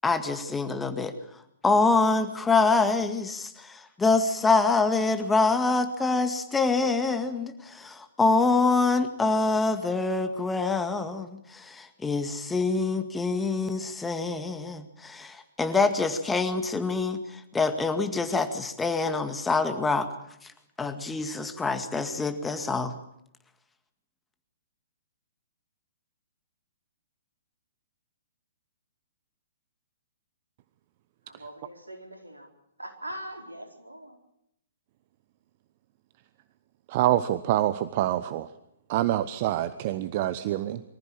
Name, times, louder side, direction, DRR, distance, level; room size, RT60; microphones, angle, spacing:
voice 1, 0.0-1.1 1.6-20.1 20.8-22.9, left 3 dB, 10° left, 8 dB, 1.9 m, -25 dB
voice 2, 31.3-32.5 32.8-34.2, right 1 dB, 85° right, 3 dB, 4.5 m, -41 dB
voice 3, 36.9-38.5 38.9-40.8, right 13 dB, 40° right, 13 dB, 0.9 m, -26 dB
24.0 x 14.5 x 8.8 m, 0.77 s
figure-of-eight pair, 120°, 0 cm